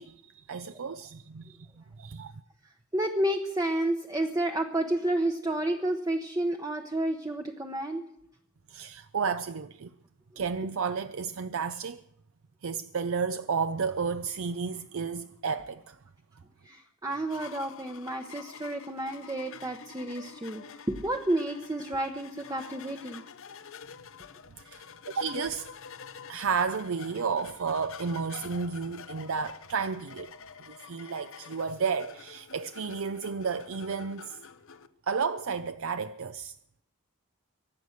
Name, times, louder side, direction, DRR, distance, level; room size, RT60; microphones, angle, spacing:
voice 1, 0.0-1.7 2.0-2.3 8.7-9.9 10.4-12.0 12.6-16.0 24.6-24.8 25.1-25.7 26.3-30.3 30.7-34.4 35.1-36.5, right 5 dB, 65° right, 0.5 m, -32 dB
voice 2, 2.6-8.0 10.3-10.4 16.6-23.2, right 1 dB, 15° right, 0.9 m, -31 dB
sound 1, 17.1-34.9, left 6 dB, 65° left, 0.8 m, -47 dB
23.5 x 9.3 x 6.5 m
head